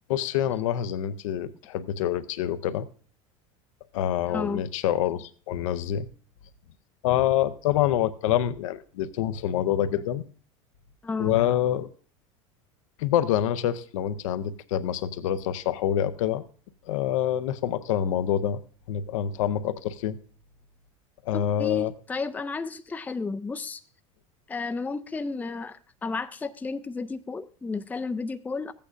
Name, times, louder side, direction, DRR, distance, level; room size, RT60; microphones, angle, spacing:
voice 1, 0.1-2.9 3.9-6.1 7.0-10.2 11.2-11.9 13.0-16.4 16.9-18.6 18.9-20.2 21.2-21.9, left 11 dB, 75° left, 13 dB, 0.6 m, -26 dB
voice 2, 4.3-4.6 11.0-11.4 21.3-23.8 24.5-28.7, left 4 dB, 10° left, 9 dB, 0.4 m, -32 dB
14.5 x 8.5 x 2.5 m, 0.43 s
hypercardioid pair, 90°, 17 cm